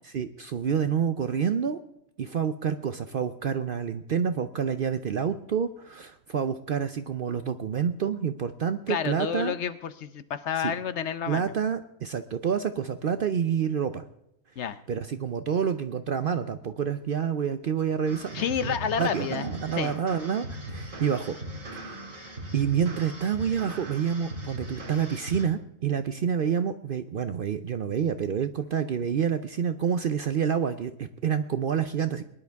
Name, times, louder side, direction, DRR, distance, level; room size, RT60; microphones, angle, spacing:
voice 1, 0.0-1.8 2.2-9.6 10.6-10.7 11.3-14.0 14.9-21.4 21.7-22.1 22.5-32.2, right 7 dB, 55° right, 11 dB, 0.6 m, -28 dB
voice 2, 8.9-11.5 14.6-14.8 18.3-19.5 19.8-19.9, left 8 dB, 65° left, 13 dB, 0.9 m, -30 dB
sound 1, 18.1-25.4, right 1 dB, 75° right, 2.8 m, -39 dB
22.0 x 10.5 x 3.5 m, 0.81 s
omnidirectional pair, 1.4 m